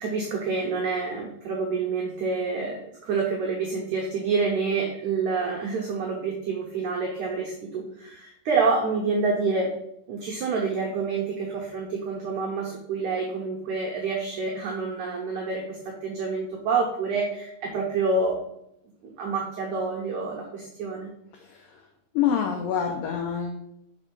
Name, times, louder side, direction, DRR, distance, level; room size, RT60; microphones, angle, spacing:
voice 1, 0.0-9.7 10.1-18.4 19.2-21.1, right 4 dB, 85° right, -1 dB, 1.6 m, -28 dB
voice 2, 21.3-21.8 22.1-23.7, left 8 dB, 90° left, 3 dB, 1.9 m, -27 dB
5.4 x 5.1 x 5.3 m, 0.76 s
omnidirectional pair, 4.8 m